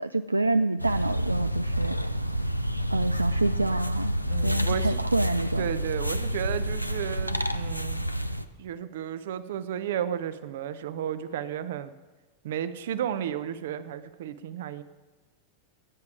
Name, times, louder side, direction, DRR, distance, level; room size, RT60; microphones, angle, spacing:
voice 1, 0.0-2.0 2.9-4.2 4.4-5.7, right 2 dB, 85° right, 11 dB, 0.3 m, -27 dB
sound 1, 0.8-8.5, equal, 90° left, 0.6 m, -29 dB
voice 2, 4.3-5.0 5.6-8.0 8.6-11.9 12.4-14.8, right 9 dB, 55° right, 13 dB, 0.7 m, -33 dB
15.5 x 9.6 x 4.9 m, 1.2 s
figure-of-eight pair, 90°, 0 cm